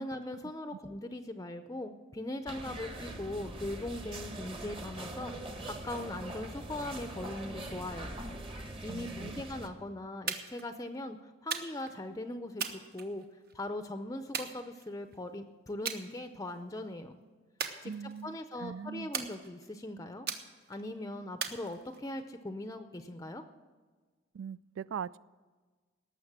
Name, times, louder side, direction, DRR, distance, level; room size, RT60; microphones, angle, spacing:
voice 1, 0.0-8.2 8.8-13.2 13.5-17.2 17.8-17.9 18.2-20.3 20.7-23.4, left 1 dB, 20° left, 8 dB, 0.6 m, -40 dB
sound 1, 2.5-9.7, right 1 dB, 30° right, 1.2 m, -42 dB
voice 2, 8.9-9.3 17.8-19.1 24.3-25.2, right 7 dB, 85° right, 19 dB, 0.3 m, -41 dB
sound 2, 10.3-10.7 11.5-12.0 12.6-13.5 14.3-15.2 15.9-16.1 16.5-16.8 17.6-18.4 19.1-19.8 20.3-20.8 21.4-22.2, right 6 dB, 55° right, 1.1 m, -39 dB
18.0 x 6.9 x 7.3 m, 1.4 s
head